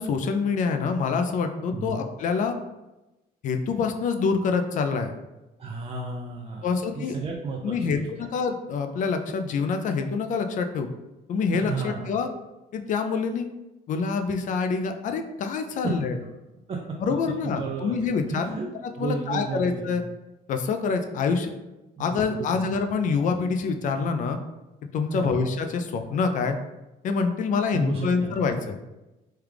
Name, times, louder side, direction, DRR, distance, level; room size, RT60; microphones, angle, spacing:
voice 1, 0.0-2.5 3.4-5.1 6.6-7.2 7.6-10.9 11.3-12.3 12.7-13.5 13.9-16.2 17.0-18.6 18.8-20.0 20.5-21.5 22.0-24.4 24.9-26.5 27.0-28.8, left 5 dB, 50° left, 6 dB, 0.4 m, -26 dB
voice 2, 5.6-8.3 11.5-12.1 15.8-15.9 16.7-17.0 17.4-18.7 19.0-19.9 22.0-22.7 25.1-25.4 27.7-28.4, right 4 dB, 35° right, -1 dB, 0.4 m, -33 dB
3.2 x 2.3 x 3.3 m, 1.0 s
cardioid pair, 110°, 17 cm